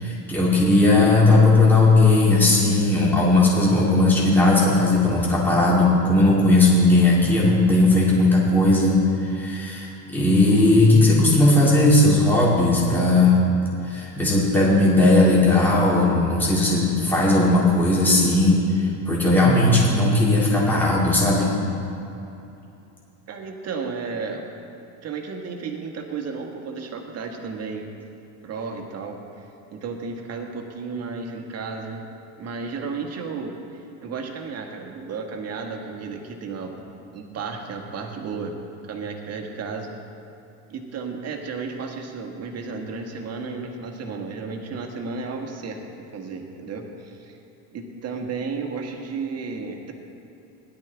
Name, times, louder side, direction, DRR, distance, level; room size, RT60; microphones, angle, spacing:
voice 1, 0.0-13.4 13.8-21.5, left 2 dB, 5° left, -6 dB, 2.6 m, -17 dB
voice 2, 23.3-24.5 25.0-27.8 28.4-32.1 32.4-36.8 37.1-38.5 38.9-39.9 40.7-47.4 47.7-49.9, right 4 dB, 40° right, 2 dB, 1.7 m, -33 dB
16.5 x 11.5 x 3.5 m, 2.8 s
supercardioid pair, 125°, 40 cm